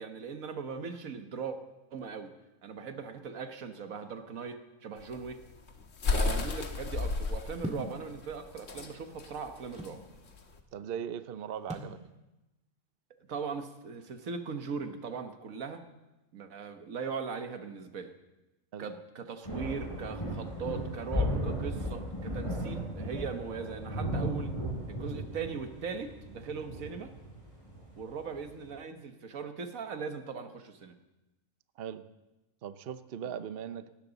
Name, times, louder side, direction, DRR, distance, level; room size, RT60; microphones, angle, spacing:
voice 1, 0.0-1.6 1.9-2.3 2.6-5.4 6.1-10.0 13.3-15.8 16.3-18.1 18.8-24.5 24.9-27.1 28.0-30.9, right 5 dB, 85° right, 7 dB, 1.6 m, -39 dB
sound 1, 5.0-10.6, left 3 dB, 65° left, 1.7 m, -33 dB
sound 2, 7.6-8.0 8.9-10.1 11.7-12.0, equal, 5° right, 1.7 m, -39 dB
voice 2, 10.7-12.0 18.7-18.9 31.8-32.1 32.6-33.9, right 8 dB, 55° right, 12 dB, 0.8 m, -39 dB
sound 3, 19.4-28.6, equal, 25° left, 7.2 m, -35 dB
19.0 x 17.0 x 4.0 m, 1.0 s
omnidirectional pair, 1.4 m